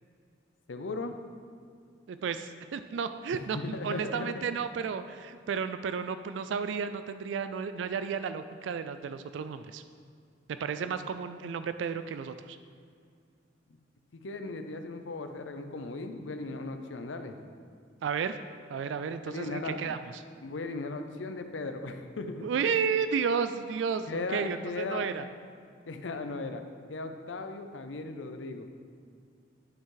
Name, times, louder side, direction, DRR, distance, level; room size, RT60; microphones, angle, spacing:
voice 1, 0.7-1.2 3.3-4.4 14.1-17.4 19.3-19.9 20.4-22.5 24.1-25.1 25.9-26.6 26.9-28.7, left 3 dB, 85° left, 7 dB, 0.6 m, -37 dB
voice 2, 2.1-3.6 3.8-9.8 10.5-12.6 18.0-18.4 18.7-20.2 22.4-25.2, right 6 dB, 75° right, 10 dB, 0.3 m, -32 dB
11.5 x 5.2 x 3.9 m, 2.3 s
head